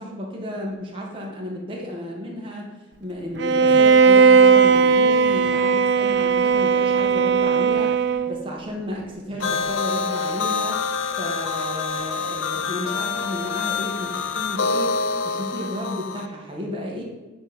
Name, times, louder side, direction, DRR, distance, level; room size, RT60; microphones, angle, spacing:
voice 1, 0.0-2.7 3.0-8.0 8.3-10.8 11.1-14.9 15.2-17.0, left 1 dB, 25° right, -2 dB, 1.8 m, -33 dB
Bowed string instrument, 3.4-8.5, right 5 dB, 60° right, 0.4 m, -17 dB
sound 1, 9.4-16.3, left 5 dB, 80° left, 0.6 m, -26 dB
8.9 x 4.4 x 6.9 m, 1.2 s
head